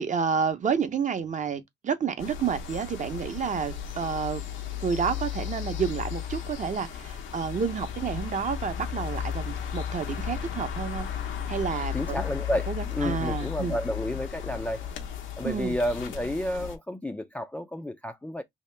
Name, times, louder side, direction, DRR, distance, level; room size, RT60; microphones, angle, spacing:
voice 1, 0.0-4.4 4.8-11.1 11.5-12.2 12.7-13.8 15.4-15.8, right 6 dB, 40° right, 0.6 m, -30 dB
sound 1, 2.2-16.8, left 9 dB, 85° left, 0.8 m, -35 dB
voice 2, 11.9-14.9 15.4-18.4, left 1 dB, 5° left, 0.3 m, -31 dB
2.8 x 2.8 x 3.2 m
cardioid pair, 90°, 20 cm